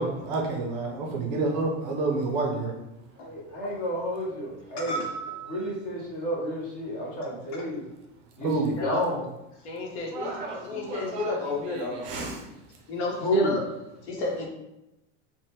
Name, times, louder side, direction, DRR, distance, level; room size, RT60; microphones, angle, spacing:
voice 1, 0.0-2.7 8.4-8.7 10.1-11.4 12.0-12.3, right 3 dB, 40° right, 1 dB, 0.5 m, -29 dB
voice 2, 3.2-5.0 5.5-7.8 8.4-9.2 13.2-13.6, equal, 25° left, -4 dB, 0.6 m, -30 dB
voice 3, 4.8-5.6 7.5-7.6 8.8-9.0 9.6-10.4 10.6-12.3 12.9-13.6 14.0-14.5, left 2 dB, 65° left, -1 dB, 0.9 m, -32 dB
3.5 x 2.1 x 2.7 m, 0.91 s
supercardioid pair, 180°, 37 cm